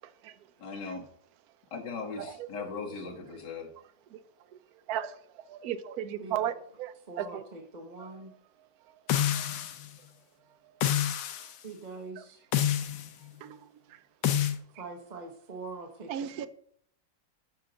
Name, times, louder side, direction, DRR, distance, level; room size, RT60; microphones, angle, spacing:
voice 1, 0.6-1.0 1.7-3.7, left 4 dB, 70° left, 2.2 m, -38 dB
voice 2, 5.5-7.4 8.0-8.1 9.3-9.4 13.4-13.6 16.1-16.5, right 10 dB, 70° right, 1.0 m, -35 dB
voice 3, 7.1-8.3 11.6-12.4 14.8-16.5, right 3 dB, 35° right, 0.8 m, -43 dB
sound 1, 9.1-9.9 10.8-11.5 12.5-13.1 14.2-14.6, left 11 dB, 85° left, 1.4 m, -28 dB
8.5 x 5.7 x 3.8 m
omnidirectional pair, 1.9 m